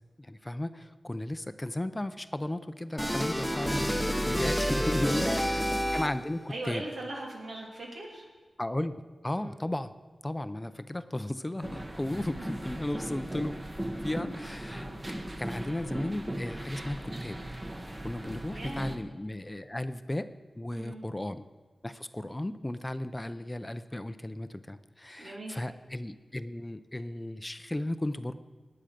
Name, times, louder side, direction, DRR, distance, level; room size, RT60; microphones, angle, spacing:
voice 1, 0.2-6.8 8.6-8.9 9.2-9.9 10.2-13.6 13.9-17.4 18.0-21.4 21.8-28.3, left 1 dB, 15° left, 11 dB, 0.5 m, -35 dB
sound 1, 3.0-6.4, equal, ahead, 0.9 m, -29 dB
voice 2, 5.1-5.4 6.5-8.3 9.4-9.6 12.3-12.4 14.7-15.0 18.5-19.0 20.7-21.1 25.2-25.6, right 2 dB, 85° right, -2 dB, 3.0 m, -39 dB
sound 2, 11.6-19.0, right 1 dB, 25° right, 1.1 m, -38 dB
18.5 x 8.7 x 5.1 m, 1.3 s
wide cardioid pair, 110°, 0 cm